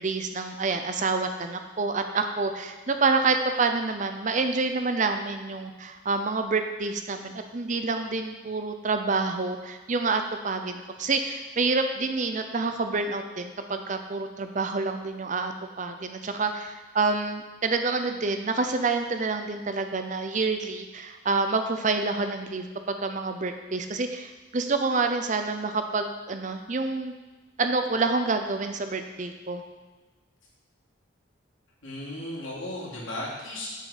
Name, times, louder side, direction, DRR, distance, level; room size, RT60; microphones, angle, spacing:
voice 1, 0.0-15.5 15.8-27.1 27.6-29.6, right 3 dB, 40° right, 7 dB, 0.6 m, -28 dB
voice 2, 31.8-33.7, left 1 dB, 80° left, -5 dB, 2.7 m, -35 dB
7.8 x 6.5 x 5.0 m, 1.2 s
head